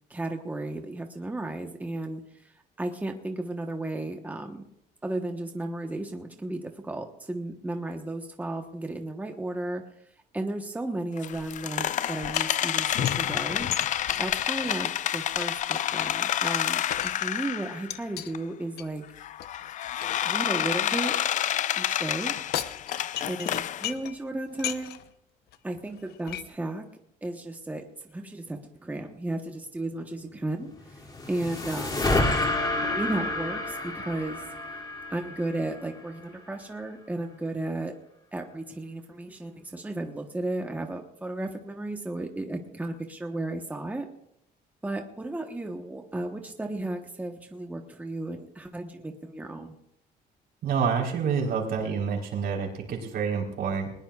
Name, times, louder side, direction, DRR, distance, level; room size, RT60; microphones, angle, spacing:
voice 1, 0.1-2.5 2.8-4.6 5.0-9.8 10.3-13.7 14.2-19.0 20.2-21.2 21.8-22.4 23.3-25.0 25.6-26.9 27.2-31.0 31.3-32.1 32.8-34.5 35.1-37.9 38.3-44.1 44.8-49.8, right 2 dB, 10° right, 4 dB, 1.2 m, -34 dB
sound 1, 11.2-17.9 18.3-18.4 19.2-23.9, left 11 dB, 45° left, 0.4 m, -29 dB
sound 2, 12.0-17.4 17.9-18.3 18.8-21.5 22.2-24.2 24.5-25.1 25.5-25.6 25.9-26.4, left 11 dB, 70° left, 0.9 m, -38 dB
sound 3, 30.8-36.2, left 2 dB, 25° left, 2.8 m, -29 dB
voice 2, 50.6-53.9, right 6 dB, 70° right, 1 dB, 4.1 m, -28 dB
20.5 x 20.0 x 2.5 m, 0.77 s
cardioid pair, 110°, 17 cm